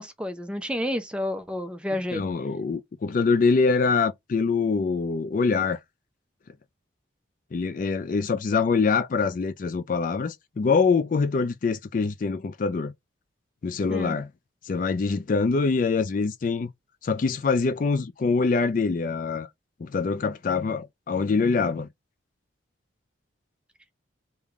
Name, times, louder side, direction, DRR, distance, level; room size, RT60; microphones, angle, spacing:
voice 1, 0.0-2.2 13.9-14.2, left 1 dB, 5° right, 0.6 m, -30 dB
voice 2, 2.1-5.8 7.5-12.9 13.6-14.3 14.6-16.7 17.0-19.5 19.8-21.9, left 4 dB, 40° left, 0.3 m, -24 dB
3.6 x 2.8 x 3.5 m
head